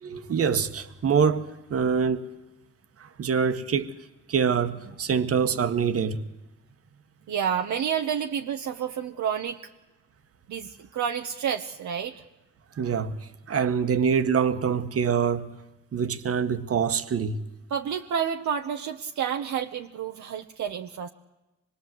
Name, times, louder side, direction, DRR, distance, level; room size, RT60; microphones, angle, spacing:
voice 1, 0.0-2.3 3.0-3.9 4.3-6.2 12.8-13.1 13.5-15.5 15.9-17.4, right 6 dB, 50° right, 1.6 m, -25 dB
voice 2, 7.3-9.6 10.5-12.2 17.7-21.1, right 8 dB, 70° right, 1.2 m, -29 dB
25.0 x 21.5 x 7.9 m
cardioid pair, 90°, 30 cm